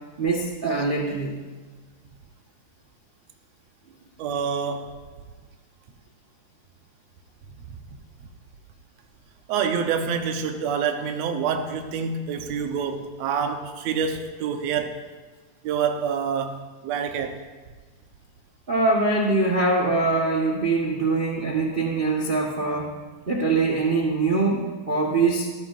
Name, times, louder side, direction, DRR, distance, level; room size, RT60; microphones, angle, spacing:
voice 1, 0.2-1.3 18.7-22.9 23.3-25.5, right 3 dB, 85° right, -1 dB, 0.4 m, -23 dB
voice 2, 4.2-4.9 7.7-7.8 9.5-15.0 15.6-17.4, right 6 dB, 70° right, 5 dB, 2.1 m, -27 dB
18.5 x 14.5 x 2.6 m, 1.4 s
omnidirectional pair, 3.4 m